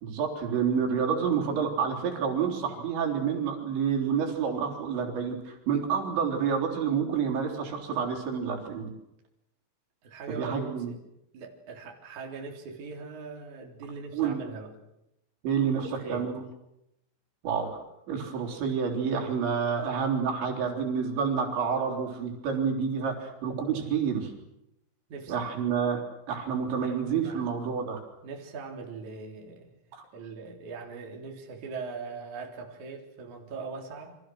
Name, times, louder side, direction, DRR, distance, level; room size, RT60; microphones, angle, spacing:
voice 1, 0.0-8.9 10.3-10.9 14.1-14.4 15.4-16.4 17.4-17.8 18.1-24.3 25.3-26.0 26.3-28.0 29.9-30.0, right 6 dB, 70° right, 2 dB, 6.0 m, -29 dB
voice 2, 10.0-11.0 11.3-14.7 15.7-16.3 25.1-25.4 26.8-27.5 28.2-29.6 30.1-34.2, right 4 dB, 40° right, 1 dB, 4.5 m, -41 dB
29.5 x 26.0 x 6.4 m, 0.84 s
omnidirectional pair, 5.5 m